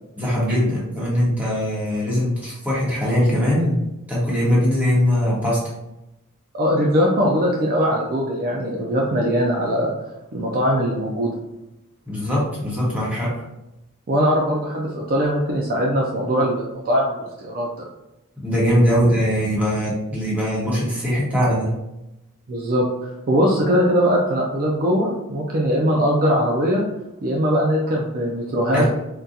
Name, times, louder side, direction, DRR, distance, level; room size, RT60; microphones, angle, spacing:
voice 1, 0.1-3.8 4.1-5.7 12.1-13.4 18.4-21.7 28.7-28.8, equal, 5° right, -7 dB, 1.1 m, -21 dB
voice 2, 6.5-9.9 10.3-11.3 14.1-17.9 22.5-26.9 27.2-28.8, equal, 40° right, -2 dB, 0.5 m, -21 dB
3.7 x 2.3 x 2.7 m, 0.94 s
head